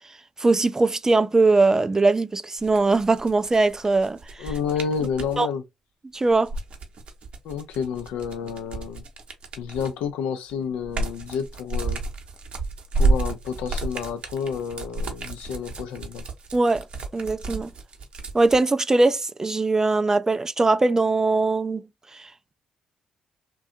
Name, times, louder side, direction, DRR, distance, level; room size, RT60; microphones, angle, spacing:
voice 1, 0.4-4.5 5.4-5.5 6.1-6.5 16.5-16.8 17.1-17.7 18.3-21.8 22.1-22.3, right 3 dB, 25° right, 0.3 m, -21 dB
onions shake, 2.6-5.4 6.3-10.1 10.5-18.6, right 2 dB, 55° right, 0.8 m, -30 dB
voice 2, 4.4-5.6 7.4-9.0 9.6-12.0 12.9-16.3, left 7 dB, 75° left, 0.4 m, -30 dB
2.5 x 2.2 x 2.6 m
hypercardioid pair, 45°, 2 cm